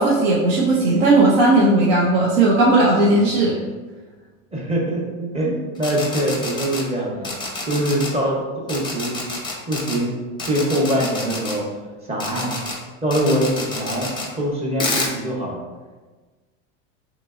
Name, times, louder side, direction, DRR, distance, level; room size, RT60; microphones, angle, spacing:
voice 1, 0.0-3.5, right 2 dB, 65° right, -5 dB, 0.8 m, -16 dB
voice 2, 4.5-7.3 7.7-8.4 8.7-9.2 9.7-10.1 10.5-11.7 12.1-12.6 13.0-15.6, right 1 dB, 15° right, -3 dB, 0.9 m, -23 dB
sound 1, 5.8-6.8 7.2-8.1 8.7-10.0 10.4-11.6 12.2-12.8 13.1-14.3 14.8-15.1, left 2 dB, 10° left, 0.6 m, -28 dB
3.7 x 3.0 x 2.5 m, 1.3 s
hypercardioid pair, 100°, 41 cm